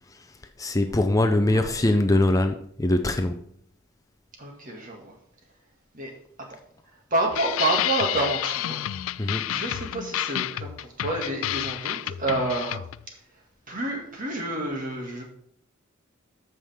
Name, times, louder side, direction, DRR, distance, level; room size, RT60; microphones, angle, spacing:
voice 1, 0.1-3.4 9.2-9.6, left 1 dB, 15° left, 0.5 m, -23 dB
voice 2, 1.5-1.9 4.4-5.1 5.9-6.1 7.1-8.8 9.5-12.8 13.7-15.2, right 2 dB, 40° right, 2.2 m, -29 dB
sound 1, 7.3-13.0, left 13 dB, 75° left, 0.3 m, -30 dB
13.5 x 5.7 x 3.6 m
head